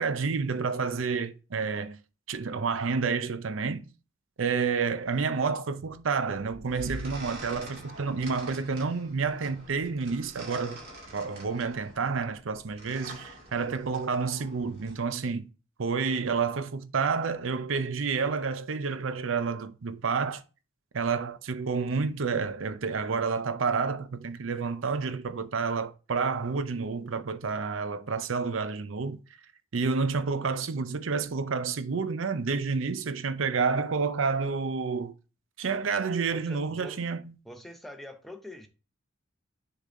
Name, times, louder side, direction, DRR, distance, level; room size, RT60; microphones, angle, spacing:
voice 1, 0.0-2.0 2.3-3.9 4.4-10.8 11.1-15.5 15.8-20.4 20.9-29.2 29.7-35.1 35.6-37.2, right 5 dB, 80° right, 0.6 m, -29 dB
sound 1, 6.3-15.0, right 1 dB, 50° right, 2.2 m, -45 dB
voice 2, 36.3-37.0 37.4-38.7, left 1 dB, ahead, 0.6 m, -44 dB
6.8 x 3.9 x 3.7 m
head